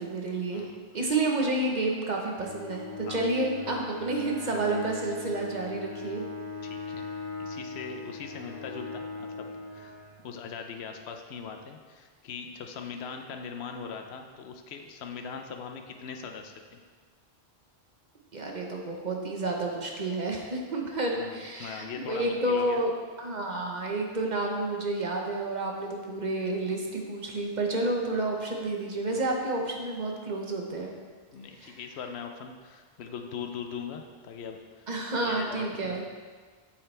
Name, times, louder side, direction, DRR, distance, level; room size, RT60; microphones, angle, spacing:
voice 1, 0.0-0.7 0.9-6.2 18.3-22.9 23.2-30.9 31.6-31.8 34.9-36.0, right 2 dB, 45° right, 0 dB, 1.1 m, -30 dB
Bowed string instrument, 2.4-10.6, left 4 dB, 35° left, 2.6 m, -40 dB
voice 2, 6.6-7.1 7.4-9.9 10.2-16.5 21.1-22.8 31.3-34.8 35.2-36.0, left 6 dB, 75° left, 4 dB, 0.9 m, -40 dB
8.6 x 6.7 x 3.3 m, 1.5 s
omnidirectional pair, 1.1 m